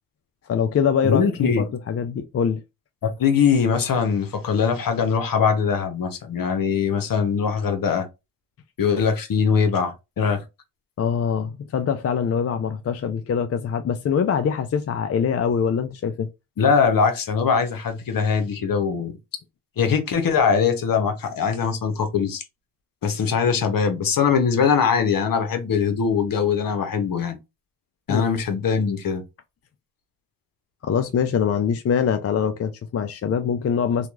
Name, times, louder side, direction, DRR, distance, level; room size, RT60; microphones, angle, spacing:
voice 1, 0.5-2.6 11.0-16.3 28.1-28.2 30.8-34.1, left 7 dB, 40° left, 0.4 m, -23 dB
voice 2, 1.0-1.7 3.0-8.1 8.8-10.4 16.6-19.1 19.8-22.4 23.0-27.4 28.1-29.2, left 6 dB, 60° left, 0.9 m, -21 dB
2.8 x 2.3 x 2.4 m
cardioid pair, 55°, 39 cm